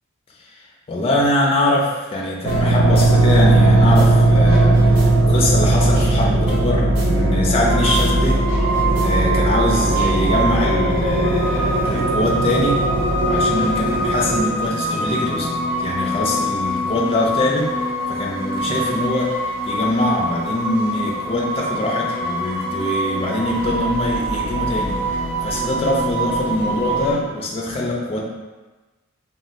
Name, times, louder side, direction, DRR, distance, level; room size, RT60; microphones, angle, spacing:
voice 1, 0.4-8.4 9.0-12.8 13.3-15.5 15.8-17.7 18.1-25.0 25.4-28.2, left 1 dB, 25° left, -2 dB, 0.4 m, -23 dB
sound 1, 2.4-14.4, right 2 dB, 80° right, 0.4 m, -17 dB
sound 2, 2.5-2.7 2.9-4.1 4.3-7.7 7.9-8.1 8.4-10.5, right 1 dB, 50° right, 0.8 m, -35 dB
sound 3, 7.7-27.1, right 1 dB, 10° right, 0.6 m, -24 dB
2.6 x 2.2 x 3.0 m, 1.2 s
head